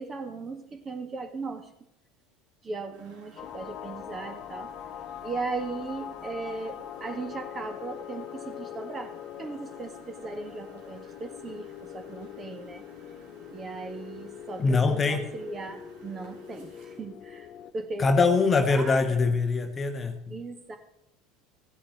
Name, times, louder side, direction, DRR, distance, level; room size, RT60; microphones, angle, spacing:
voice 1, 0.0-1.7 2.6-4.7 5.2-9.1 9.4-12.8 13.5-17.5 17.7-19.3 20.3-20.8, right 3 dB, 25° right, 6 dB, 1.7 m, -37 dB
Engine, 2.9-17.0, right 4 dB, 65° right, 2.7 m, -55 dB
sound 1, 3.4-17.7, left 10 dB, 40° left, 0.6 m, -42 dB
voice 2, 14.6-15.3 18.0-20.4, left 4 dB, 25° left, 7 dB, 1.0 m, -23 dB
16.0 x 10.0 x 3.1 m, 0.87 s
figure-of-eight pair, 70°, 0 cm